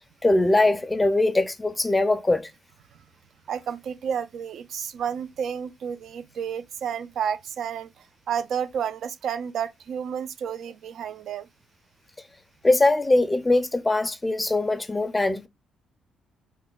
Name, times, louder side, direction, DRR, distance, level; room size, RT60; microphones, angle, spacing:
voice 1, 0.2-2.5 12.6-15.5, left 2 dB, 15° left, 0.4 m, -21 dB
voice 2, 3.5-11.5, right 8 dB, 70° right, 0.3 m, -31 dB
3.2 x 2.1 x 3.8 m
cardioid pair, 90°, 0 cm